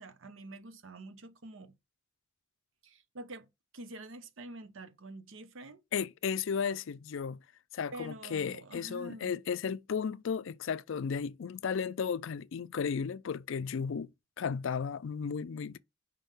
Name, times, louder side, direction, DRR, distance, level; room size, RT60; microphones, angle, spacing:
voice 1, 0.0-1.7 2.8-3.5 3.7-5.8 7.9-9.4, right 2 dB, 65° right, 0.7 m, -47 dB
voice 2, 5.9-7.4 7.7-14.1 14.4-15.8, left 6 dB, 65° left, 0.4 m, -34 dB
5.3 x 3.6 x 5.5 m
head